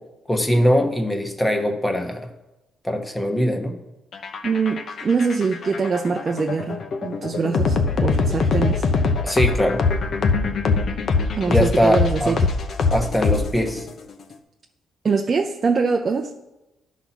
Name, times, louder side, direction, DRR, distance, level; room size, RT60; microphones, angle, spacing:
voice 1, 0.3-2.2 2.8-3.8 9.2-9.8 11.5-12.4 12.9-13.9, equal, 10° left, 1.2 m, -21 dB
sound 1, 4.1-13.9, left 4 dB, 60° left, 0.9 m, -22 dB
voice 2, 4.4-8.9 11.4-12.5 15.0-16.3, right 5 dB, 40° right, 0.6 m, -23 dB
11.5 x 4.1 x 5.9 m
cardioid pair, 90°, 0 cm